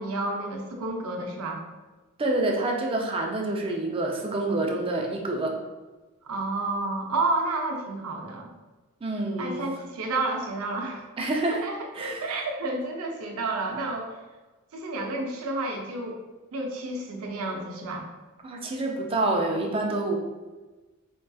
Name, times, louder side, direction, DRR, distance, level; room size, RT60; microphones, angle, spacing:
voice 1, 0.0-1.6 6.2-8.5 9.4-11.1 11.5-11.9 12.2-14.1 14.7-16.2 16.5-18.1, right 2 dB, 80° right, 1 dB, 0.6 m, -30 dB
voice 2, 2.2-5.5 9.0-9.6 11.2-11.7 11.9-12.4 18.4-20.2, right 2 dB, 25° right, 1 dB, 0.4 m, -27 dB
4.4 x 2.6 x 2.3 m, 1.2 s
head